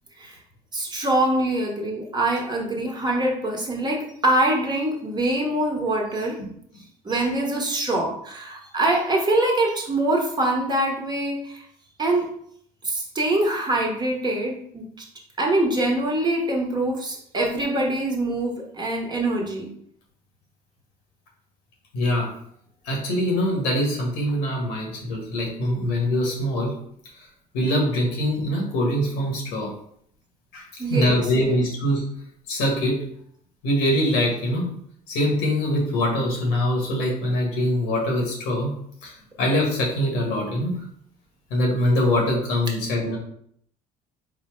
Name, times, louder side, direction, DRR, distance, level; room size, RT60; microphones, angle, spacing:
voice 1, 0.7-6.4 7.0-11.7 12.0-12.3 12.8-15.0 15.4-19.7 30.8-31.6, right 1 dB, 25° right, 0 dB, 1.1 m, -24 dB
voice 2, 21.9-22.3 22.8-26.7 27.5-29.7 30.5-32.1 32.5-33.0 33.6-34.7 35.1-38.7 39.0-39.1 39.4-40.8 41.5-43.2, equal, 90° left, -1 dB, 1.4 m, -23 dB
4.3 x 2.1 x 4.3 m, 0.67 s
supercardioid pair, 95°, 17 cm